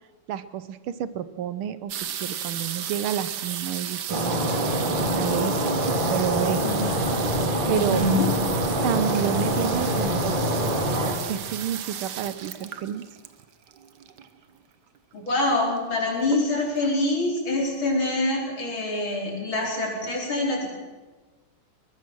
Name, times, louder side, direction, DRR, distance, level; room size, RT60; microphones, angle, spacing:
voice 1, 0.3-4.4 5.1-5.8 6.1-6.6 7.7-8.0 8.8-10.7 11.2-13.0, right 10 dB, 75° right, 14 dB, 1.7 m, -30 dB
sound 1, 1.9-14.4 15.3-15.4 15.5-15.9 16.3-16.8 17.4-17.5 17.7-17.8, right 9 dB, 60° right, 1.4 m, -35 dB
Stream, 4.1-11.1, equal, 20° right, 3.6 m, -25 dB
voice 2, 7.7-8.3 15.1-20.7, left 2 dB, 65° left, -1 dB, 5.2 m, -25 dB
21.5 x 20.0 x 6.2 m, 1.3 s
omnidirectional pair, 2.4 m